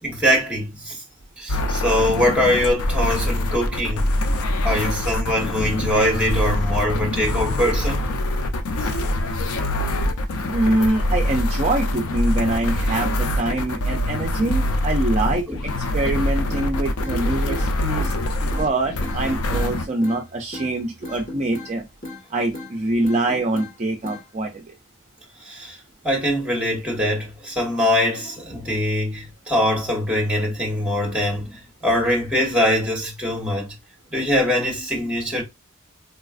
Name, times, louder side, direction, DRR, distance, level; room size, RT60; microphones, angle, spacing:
voice 1, 0.0-1.0 1.4-4.1 4.6-8.1 8.8-8.9 15.5-15.6 18.0-18.2 25.4-25.8 26.0-33.7 34.1-35.4, left 1 dB, 5° right, 1.1 m, -22 dB
sound 1, 1.5-19.9, left 1 dB, 85° left, 0.5 m, -24 dB
voice 2, 10.5-15.5 15.9-18.1 18.4-21.9 22.3-24.6, right 2 dB, 30° right, 0.4 m, -24 dB
sound 2, 16.5-16.7 17.0-17.7 18.0-18.2 18.5-18.7 19.0-19.7 20.0-20.2 20.5-20.7 21.0-21.7 22.0-22.2 22.5-22.7 23.0-23.7 24.0-24.2, left 2 dB, 40° left, 1.2 m, -35 dB
4.0 x 2.3 x 2.4 m
head